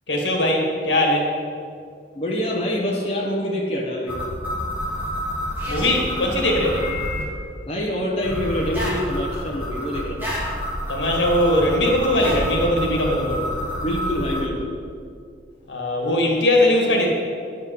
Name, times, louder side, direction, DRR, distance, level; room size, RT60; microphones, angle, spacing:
voice 1, 0.1-1.3 5.6-6.9 10.9-13.5 15.7-17.1, left 1 dB, 75° left, 0 dB, 2.1 m, -20 dB
voice 2, 2.1-4.1 7.6-10.3 13.8-14.7, left 1 dB, 35° left, -3 dB, 1.3 m, -25 dB
sound 1, 4.1-7.2 8.2-14.4, equal, 10° right, 2.4 m, -28 dB
10.5 x 5.3 x 8.3 m, 2.2 s
head